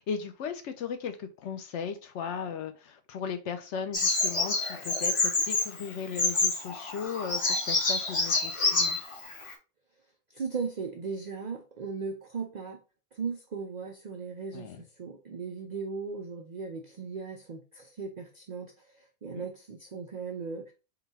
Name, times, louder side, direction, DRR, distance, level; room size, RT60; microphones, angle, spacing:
voice 1, 0.0-9.0 14.5-14.8 19.4-19.5, left 7 dB, 65° left, 8 dB, 0.8 m, -37 dB
Bird vocalization bird call bird song, 3.9-9.5, left 3 dB, 35° left, 0.5 m, -28 dB
voice 2, 10.3-12.8 13.1-20.7, right 5 dB, 75° right, 3 dB, 0.4 m, -37 dB
3.9 x 2.2 x 4.0 m, 0.31 s
omnidirectional pair, 1.4 m